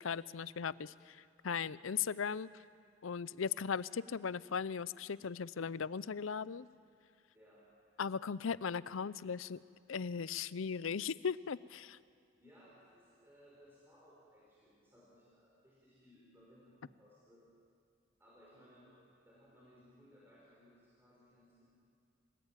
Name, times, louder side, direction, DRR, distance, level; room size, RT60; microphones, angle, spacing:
voice 1, 0.0-2.5 3.0-6.7 8.0-9.6 9.9-12.0, left 6 dB, 85° left, 18 dB, 0.6 m, -38 dB
voice 2, 12.4-17.5 18.2-18.9 19.2-21.6, equal, 10° right, -7 dB, 5.7 m, -63 dB
28.0 x 19.0 x 9.1 m, 2.3 s
head